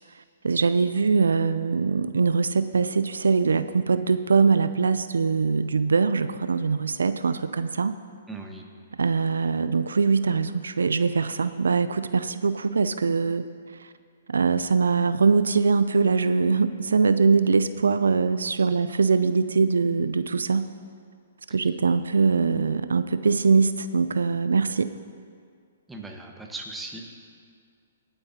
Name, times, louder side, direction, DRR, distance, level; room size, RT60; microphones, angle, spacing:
voice 1, 0.4-8.0 9.0-13.4 13.8-13.9 14.3-20.7 21.5-24.9, right 4 dB, 85° right, 12 dB, 0.4 m, -22 dB
voice 2, 8.3-8.7 25.9-27.0, right 2 dB, 5° right, 1 dB, 1.3 m, -38 dB
19.0 x 8.8 x 2.8 m, 2.2 s
hypercardioid pair, 130°, 0 cm